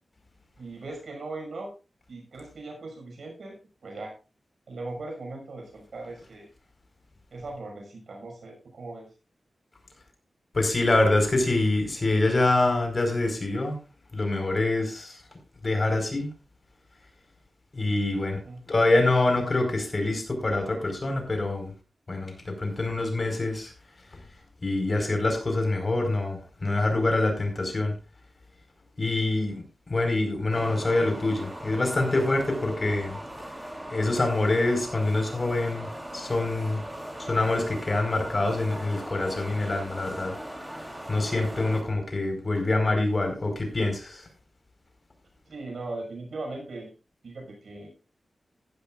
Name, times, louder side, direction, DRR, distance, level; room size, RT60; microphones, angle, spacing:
voice 1, 0.6-1.7 2.1-3.6 3.8-4.1 4.7-6.5 7.3-9.1 18.4-18.6 45.5-46.9 47.2-47.9, right 2 dB, 80° right, 2 dB, 6.0 m, -39 dB
voice 2, 10.5-13.8 14.1-15.2 15.6-16.3 17.7-18.4 18.7-21.7 22.1-23.7 24.6-27.9 29.0-29.6 29.9-33.2 33.9-35.9 36.1-36.8 37.3-40.3 40.7-40.8 41.1-44.2, left 2 dB, 45° left, 4 dB, 4.9 m, -25 dB
sound 1, 30.5-41.8, right 1 dB, 10° right, 3.4 m, -39 dB
15.5 x 12.0 x 2.5 m, 0.31 s
cardioid pair, 60°, 0 cm